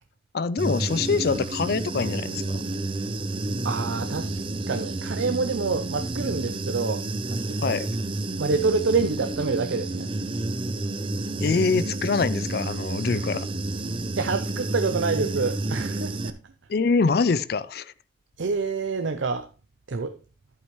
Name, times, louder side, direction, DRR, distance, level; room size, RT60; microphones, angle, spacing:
voice 1, 0.3-2.6 7.6-7.9 11.4-13.5 16.7-17.9, left 4 dB, 55° left, 0.4 m, -24 dB
Human voice / Buzz, 0.6-16.3, right 2 dB, 25° right, 0.6 m, -30 dB
voice 2, 3.6-7.8 8.4-10.1 14.1-16.4 18.4-19.5 19.9-20.2, right 4 dB, 80° right, 0.6 m, -27 dB
11.0 x 8.5 x 3.1 m
head